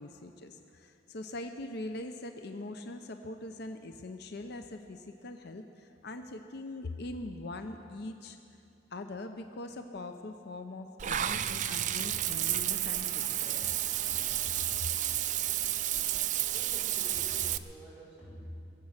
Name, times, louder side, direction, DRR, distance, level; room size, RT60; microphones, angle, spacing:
voice 1, 0.0-8.4 8.9-13.7 14.8-14.9, left 2 dB, 60° left, 6 dB, 0.7 m, -42 dB
Water / Bathtub (filling or washing), 11.0-17.6, right 12 dB, 40° right, 0.4 m, -31 dB
voice 2, 16.4-18.5, equal, 5° right, -8 dB, 4.6 m, -48 dB
22.0 x 7.6 x 7.3 m, 2.6 s
head